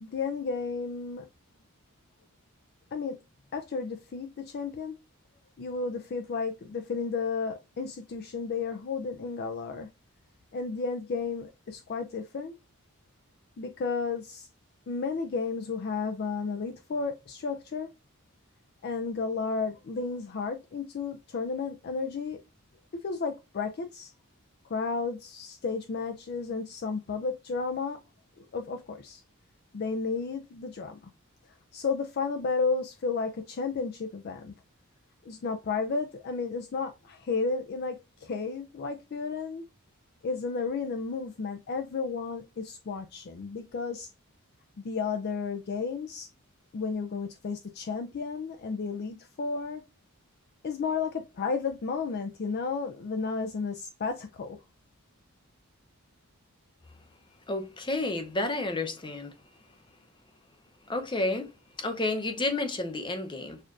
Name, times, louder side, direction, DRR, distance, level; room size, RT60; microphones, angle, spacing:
voice 1, 0.0-1.3 2.9-3.2 3.5-5.0 5.6-9.9 10.5-12.5 13.6-14.5 14.9-17.9 18.8-22.4 23.0-24.1 24.7-28.0 28.4-29.2 29.7-31.0 31.7-34.5 35.3-39.6 40.2-44.1 44.8-46.3 46.7-49.8 50.6-54.6, left 4 dB, 45° left, 0.4 m, -32 dB
voice 2, 57.5-59.3 60.9-61.5 61.8-63.6, left 2 dB, 20° left, 0.7 m, -30 dB
6.4 x 2.4 x 2.5 m
head